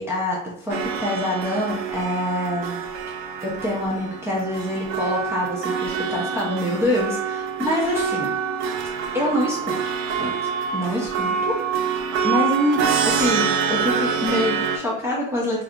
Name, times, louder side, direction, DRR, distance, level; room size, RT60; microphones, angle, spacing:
voice 1, 0.0-2.8 3.4-8.3 9.1-9.8 10.1-10.3 10.7-11.6 12.2-15.6, left 1 dB, 5° right, -7 dB, 0.4 m, -25 dB
sound 1, 0.7-14.8, right 6 dB, 70° right, 0.6 m, -26 dB
2.7 x 2.4 x 3.4 m, 0.74 s
cardioid pair, 155°, 37 cm